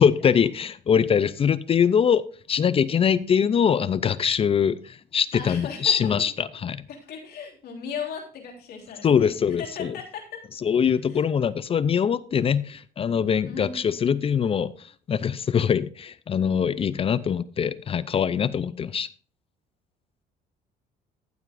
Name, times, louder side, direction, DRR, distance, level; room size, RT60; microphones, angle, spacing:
voice 1, 0.0-2.2 2.5-6.9 9.0-10.0 10.6-19.1, left 7 dB, 35° left, 0.5 m, -23 dB
voice 2, 5.3-6.1 6.9-9.3 9.6-10.4 11.1-11.2 13.4-13.9, left 6 dB, 65° left, 3.3 m, -37 dB
14.5 x 7.9 x 2.5 m
cardioid pair, 110°, 17 cm